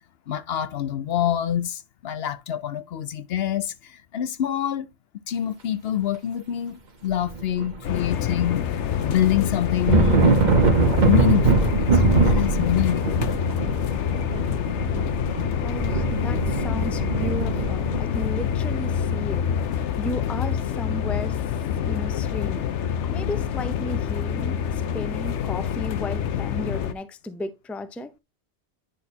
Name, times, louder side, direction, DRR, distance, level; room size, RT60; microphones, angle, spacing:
voice 1, 0.3-4.9 5.3-8.8 9.0-10.3 11.1-11.7 11.9-13.4, left 10 dB, 65° left, 0.8 m, -26 dB
sound 1, 7.2-8.2 8.5-18.0, right 4 dB, 45° right, 1.1 m, -22 dB
sound 2, 7.8-26.9, left 8 dB, 85° left, 1.0 m, -26 dB
voice 2, 15.6-19.5 20.0-21.4 21.8-22.7 23.0-28.1, left 1 dB, ahead, 0.5 m, -34 dB
10.0 x 6.3 x 2.7 m
omnidirectional pair, 1.2 m